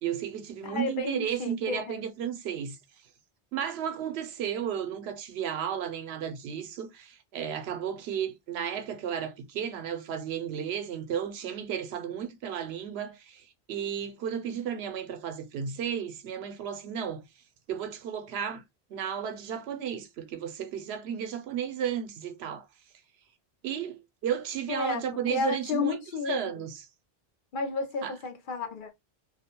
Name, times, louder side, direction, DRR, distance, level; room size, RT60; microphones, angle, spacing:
voice 1, 0.0-2.8 3.5-17.2 17.7-18.6 18.9-22.6 23.6-26.0 26.2-26.7 28.0-28.1, right 8 dB, 85° right, 0.8 m, -33 dB
voice 2, 0.6-2.0 24.7-26.6 27.5-28.9, left 4 dB, 60° left, 0.7 m, -32 dB
2.4 x 2.1 x 2.8 m
omnidirectional pair, 1.0 m